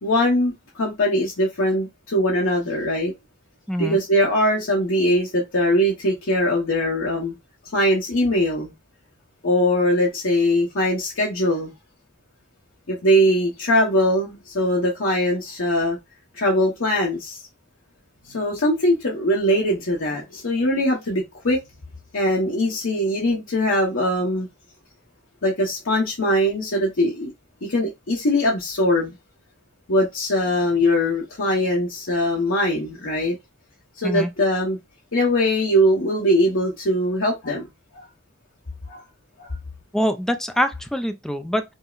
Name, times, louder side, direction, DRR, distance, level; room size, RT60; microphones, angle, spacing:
voice 1, 0.0-3.1 3.8-7.3 7.7-8.7 9.4-11.7 12.9-16.0 16.3-17.4 18.3-21.6 22.1-24.5 25.4-27.3 27.7-29.1 29.9-33.4 34.0-34.8 35.1-37.6 37.9-38.0 38.9-39.0 39.4-39.5, equal, 85° left, 1.0 m, -21 dB
voice 2, 3.7-4.0 34.0-34.3 39.9-41.7, equal, ahead, 0.3 m, -24 dB
5.3 x 2.0 x 2.4 m
head